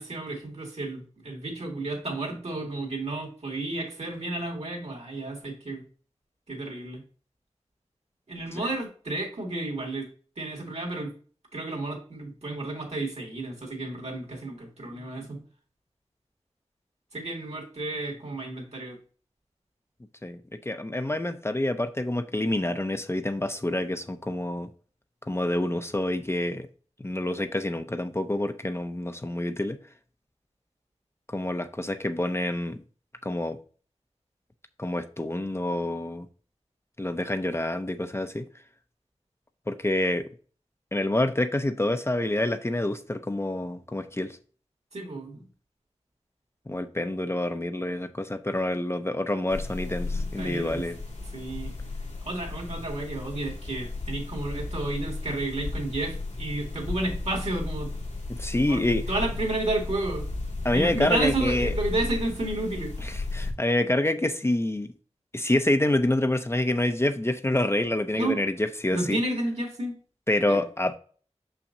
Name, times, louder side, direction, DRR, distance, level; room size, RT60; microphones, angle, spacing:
voice 1, 0.0-5.8 6.5-7.0 8.3-10.1 10.4-11.1 11.5-15.4 17.1-19.0 44.9-45.5 50.4-50.8 51.3-51.7 52.2-57.9 58.5-60.3 60.7-63.2 68.1-68.4 68.9-70.0 70.5-70.6, right 2 dB, 70° right, 2.2 m, -31 dB
voice 2, 20.7-24.7 25.3-26.7 27.0-29.8 31.3-32.8 33.2-33.6 34.8-36.3 37.0-38.5 39.7-40.3 40.9-44.4 46.7-51.0 58.3-59.0 60.6-61.7 63.0-64.9 65.3-69.2 70.3-71.0, left 1 dB, 20° left, 0.5 m, -27 dB
sound 1, 49.5-63.5, left 2 dB, 85° left, 1.8 m, -34 dB
6.3 x 5.7 x 2.7 m
wide cardioid pair, 70°, 11 cm